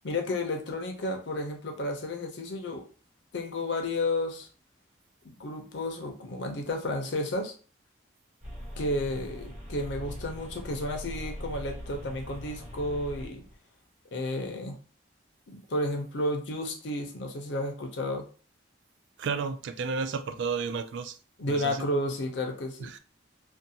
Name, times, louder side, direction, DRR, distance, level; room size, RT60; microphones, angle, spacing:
voice 1, 0.0-2.8 3.3-4.5 5.2-7.5 8.8-13.4 14.1-14.8 15.5-18.3 19.3-19.4 21.4-22.9, left 1 dB, 65° left, 0.6 m, -32 dB
sound 1, 8.4-13.5, equal, 30° right, 1.0 m, -41 dB
voice 2, 19.2-21.2 21.5-21.9 22.8-23.0, right 5 dB, 70° right, 0.3 m, -32 dB
2.5 x 2.2 x 2.7 m
head